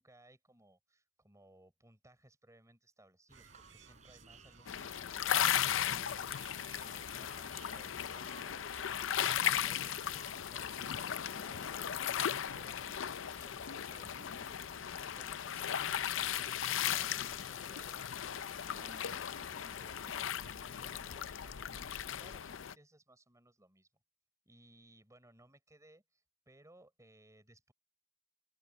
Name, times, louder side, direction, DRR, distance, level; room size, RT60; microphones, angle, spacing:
voice 1, 0.0-8.7 9.2-13.0 13.2-23.9 24.5-27.7, right 1 dB, 15° right, 6.0 m, -62 dB
sound 1, 3.3-21.1, right 3 dB, 40° right, 6.0 m, -61 dB
sound 2, 3.3-16.9, right 4 dB, 75° right, 5.1 m, -60 dB
sound 3, 4.7-22.7, left 9 dB, 80° left, 0.6 m, -37 dB
open air
head